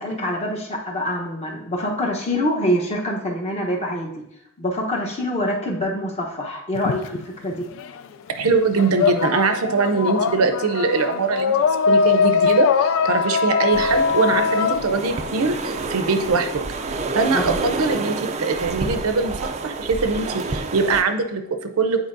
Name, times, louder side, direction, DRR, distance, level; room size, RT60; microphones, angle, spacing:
voice 1, 0.0-4.2 4.6-7.6 17.3-17.6, equal, 30° left, 0 dB, 0.9 m, -25 dB
sound 1, 6.7-8.0 8.3-16.1, left 6 dB, 60° left, 0.3 m, -21 dB
voice 2, 8.4-11.6 11.9-16.6 17.1-22.1, right 4 dB, 80° right, 8 dB, 0.6 m, -22 dB
sound 2, 13.7-21.0, right 3 dB, 30° right, 0.4 m, -29 dB
9.1 x 4.2 x 2.6 m, 0.78 s
head